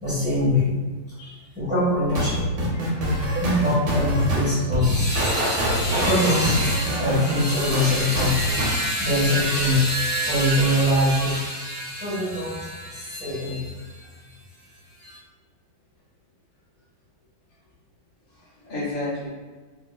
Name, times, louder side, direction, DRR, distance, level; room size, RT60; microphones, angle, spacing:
voice 1, 0.0-0.7 1.5-2.4 3.3-14.1 15.0-15.2, left 1 dB, 5° right, -11 dB, 0.9 m, -23 dB
sound 1, 2.1-8.8, equal, 75° right, 1.6 m, -25 dB
voice 2, 2.7-3.7 13.8-14.1 18.4-19.3, left 2 dB, 50° left, -6 dB, 0.5 m, -34 dB
3.4 x 2.8 x 2.3 m, 1.4 s
omnidirectional pair, 2.2 m